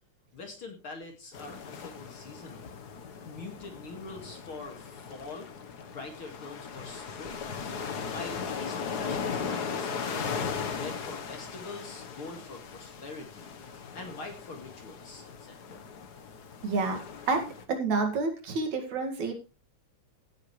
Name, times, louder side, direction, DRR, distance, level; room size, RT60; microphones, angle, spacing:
voice 1, 0.3-2.8 3.2-5.5 5.9-7.4 8.0-10.4 10.7-13.5 13.9-15.9, left 3 dB, 45° left, 3 dB, 2.7 m, -44 dB
sound 1, 1.3-17.6, left 6 dB, 85° left, 0.8 m, -38 dB
voice 2, 16.6-17.0 17.3-17.4 17.7-19.3, right 4 dB, 65° right, 5 dB, 3.4 m, -28 dB
16.0 x 9.5 x 3.2 m, 0.31 s
omnidirectional pair, 3.6 m